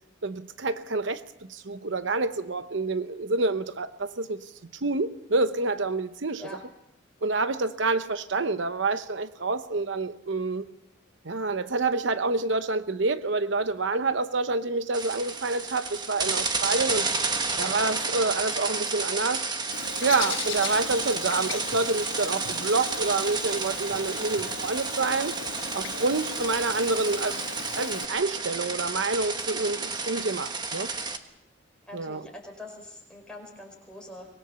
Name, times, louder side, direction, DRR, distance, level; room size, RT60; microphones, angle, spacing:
voice 1, 0.2-1.2 1.5-4.5 4.8-6.4 7.2-10.7 11.2-17.1 17.6-19.5 20.0-25.4 25.7-27.4 27.8-30.9 31.9-32.2, right 3 dB, 70° right, 11 dB, 0.8 m, -27 dB
sound 1, 14.9-31.2, right 4 dB, 20° right, 1.3 m, -31 dB
Bird, 19.7-28.1, left 6 dB, 85° left, 1.5 m, -38 dB
voice 2, 31.9-34.3, left 1 dB, 5° left, 0 dB, 4.9 m, -43 dB
24.0 x 21.0 x 7.0 m, 0.82 s
head